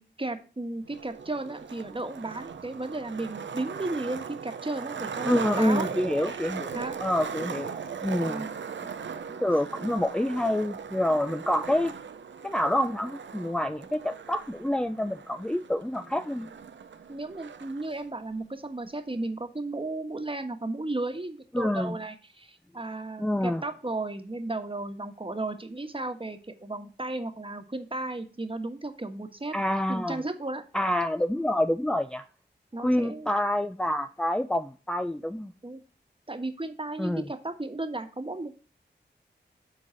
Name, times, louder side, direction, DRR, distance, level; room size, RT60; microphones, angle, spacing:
voice 1, 0.0-5.9 6.3-6.4 6.7-7.0 8.2-8.6 17.1-29.5 29.9-30.6 32.7-33.3 35.6-35.8 36.3-38.5, right 2 dB, 30° right, 1.3 m, -34 dB
Skateboard, 0.9-17.9, right 6 dB, 80° right, 0.6 m, -39 dB
voice 2, 5.2-7.7 8.0-8.5 9.4-11.9 12.4-16.5 21.5-22.0 23.2-23.7 29.5-30.3 30.7-32.2 32.8-35.5 37.0-37.3, left 1 dB, 5° left, 0.4 m, -27 dB
7.5 x 4.0 x 6.5 m
cardioid pair, 45°, 19 cm